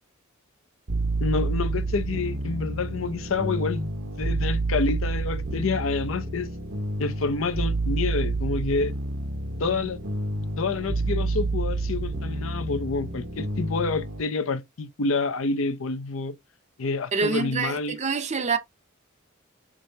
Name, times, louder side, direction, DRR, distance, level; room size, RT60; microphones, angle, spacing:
sound 1, 0.9-14.2, right 2 dB, 75° right, 1.1 m, -29 dB
voice 1, 1.2-3.9 4.2-6.5 7.0-8.9 9.6-10.0 10.6-16.4 16.8-18.0, left 4 dB, 70° left, 0.6 m, -28 dB
voice 2, 17.1-18.6, right 4 dB, 35° right, 0.6 m, -26 dB
6.0 x 3.2 x 2.8 m
head